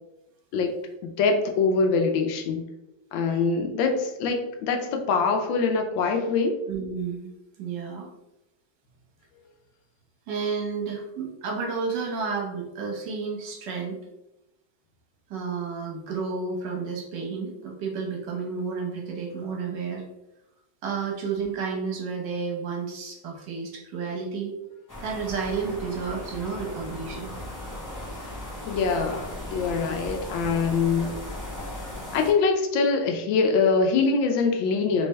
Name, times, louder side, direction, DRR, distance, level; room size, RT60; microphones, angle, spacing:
voice 1, 1.0-2.6 3.1-6.6 28.7-31.2 32.1-35.1, left 4 dB, 90° left, 4 dB, 1.4 m, -24 dB
voice 2, 6.7-7.3 7.6-8.1 10.3-14.0 15.3-20.0 20.8-24.5 25.0-27.3, right 5 dB, 75° right, -1 dB, 1.6 m, -31 dB
sound 1, 24.9-32.3, left 1 dB, 25° left, 0.4 m, -37 dB
3.4 x 3.3 x 3.2 m, 0.90 s
omnidirectional pair, 2.0 m